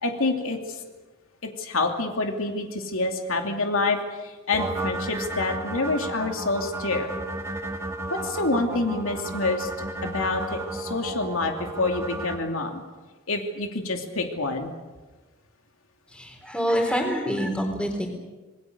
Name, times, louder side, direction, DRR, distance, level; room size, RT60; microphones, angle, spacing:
voice 1, 0.0-0.8 1.4-7.1 8.1-12.8 13.3-14.7, left 3 dB, 80° left, 3 dB, 2.7 m, -27 dB
sound 1, 4.5-12.4, right 2 dB, 15° right, 1.8 m, -33 dB
voice 2, 16.1-18.1, equal, 5° left, 3 dB, 4.0 m, -26 dB
27.0 x 21.0 x 6.7 m, 1.3 s
head